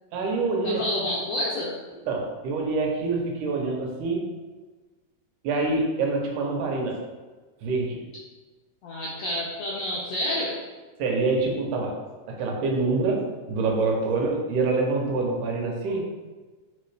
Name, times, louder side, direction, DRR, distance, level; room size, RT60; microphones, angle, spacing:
voice 1, 0.1-0.8 2.1-4.3 5.4-7.0 7.6-8.0 11.0-12.0 12.3-16.1, right 3 dB, 80° right, 0 dB, 2.2 m, -26 dB
voice 2, 0.6-1.7 8.8-10.5, left 1 dB, 80° left, -6 dB, 1.5 m, -29 dB
4.5 x 3.6 x 3.2 m, 1.3 s
omnidirectional pair, 3.8 m